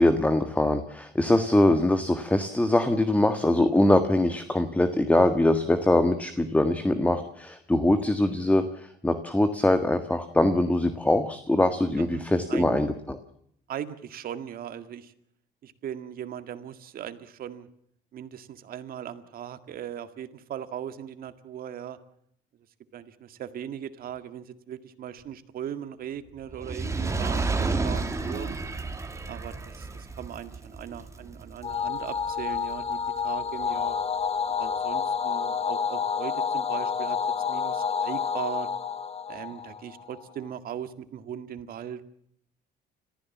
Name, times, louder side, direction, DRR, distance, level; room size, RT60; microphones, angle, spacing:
voice 1, 0.0-13.2, left 1 dB, 10° left, 9 dB, 1.5 m, -23 dB
voice 2, 12.0-12.8 13.7-15.1 15.6-17.7 18.1-22.0 22.9-28.6 29.3-34.0 34.6-37.2 37.5-38.7 39.3-42.0, right 9 dB, 60° right, 10 dB, 2.0 m, -38 dB
Fire, 26.5-32.9 33.6-33.7, right 3 dB, 15° right, 2.5 m, -31 dB
sound 1, 31.6-40.2, left 6 dB, 35° left, 1.8 m, -29 dB
30.0 x 15.0 x 7.3 m, 0.70 s
cardioid pair, 110°, 17 cm